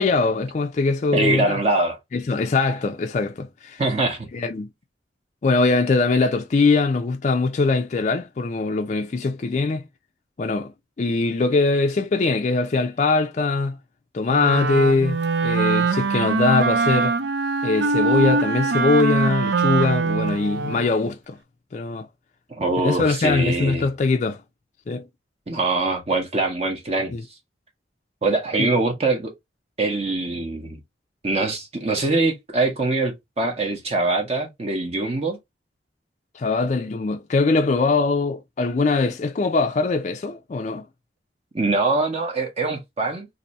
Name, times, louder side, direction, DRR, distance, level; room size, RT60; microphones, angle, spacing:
voice 1, 0.0-1.6 2.1-3.8 4.3-4.7 5.4-9.8 10.4-10.7 11.0-13.8 14.1-17.2 17.6-21.4 21.7-22.1 22.8-24.4 24.9-25.1 27.1-27.2 28.6-28.7 36.3-40.8, left 3 dB, 40° left, 0.4 m, -22 dB
voice 2, 1.1-2.0 3.8-4.3 22.5-23.9 25.5-27.1 28.2-29.3 29.8-30.8 31.2-35.4 41.5-43.3, right 2 dB, 35° right, 0.7 m, -23 dB
Wind instrument woodwind instrument, 14.3-21.0, right 4 dB, 85° right, 0.5 m, -22 dB
2.7 x 2.6 x 4.0 m
head